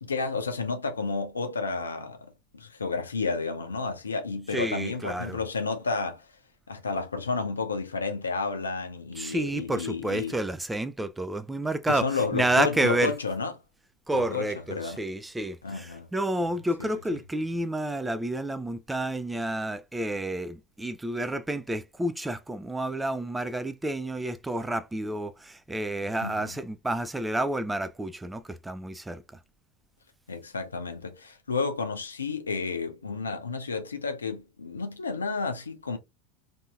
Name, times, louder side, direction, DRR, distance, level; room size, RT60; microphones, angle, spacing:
voice 1, 0.0-6.3 6.7-10.4 11.9-13.5 14.1-15.0 15.6-16.1 16.8-16.9 26.2-26.5 30.3-36.0, left 4 dB, 80° left, 0.6 m, -31 dB
voice 2, 4.5-5.4 9.2-13.1 14.1-29.2, right 1 dB, 10° right, 0.4 m, -30 dB
2.7 x 2.7 x 2.3 m
figure-of-eight pair, 80°, 0 cm